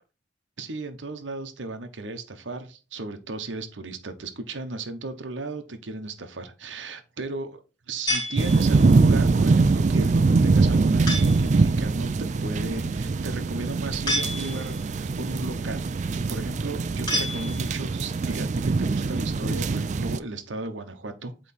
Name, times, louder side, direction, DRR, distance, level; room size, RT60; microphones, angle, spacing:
voice 1, 0.6-7.6 7.9-15.9 16.3-21.5, right 2 dB, 90° right, 8 dB, 0.9 m, -35 dB
sound 1, 8.1-9.0 11.1-11.6 14.1-14.9 17.1-18.0, equal, 25° left, 2.6 m, -30 dB
sound 2, 8.4-20.2, right 3 dB, 40° right, 0.3 m, -23 dB
8.4 x 3.2 x 4.2 m, 0.31 s
head